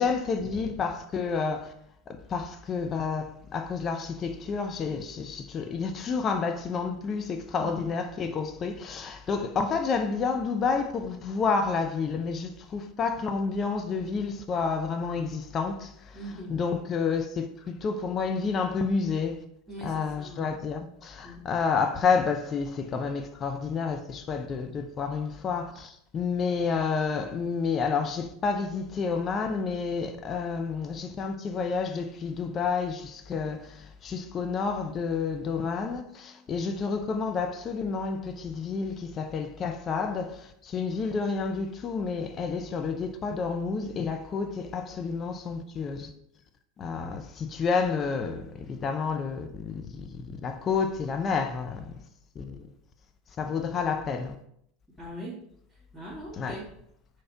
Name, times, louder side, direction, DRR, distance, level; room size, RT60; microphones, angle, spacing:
voice 1, 0.0-1.7 2.1-16.2 16.5-19.4 19.8-46.1 46.8-52.0 52.3-52.7 53.4-54.4 56.4-56.6, left 5 dB, 35° left, 0.7 m, -30 dB
voice 2, 7.6-7.9 16.1-16.6 19.7-20.5 21.2-21.4 55.0-55.4 55.7-56.6, right 1 dB, ahead, 2.3 m, -41 dB
4.7 x 4.4 x 5.8 m
hypercardioid pair, 85°, 0 cm